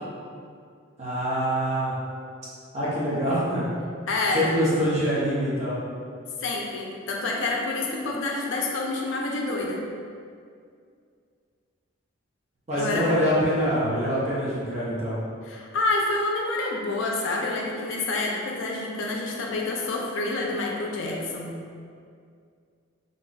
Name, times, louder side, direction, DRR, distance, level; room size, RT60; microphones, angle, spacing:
voice 1, 1.0-1.9 2.7-3.7 4.3-5.8 12.7-15.2, equal, 30° right, -8 dB, 0.7 m, -25 dB
voice 2, 4.1-4.5 6.4-9.8 12.8-13.2 15.4-21.5, left 2 dB, 60° left, -1 dB, 0.4 m, -28 dB
2.4 x 2.3 x 3.8 m, 2.3 s
head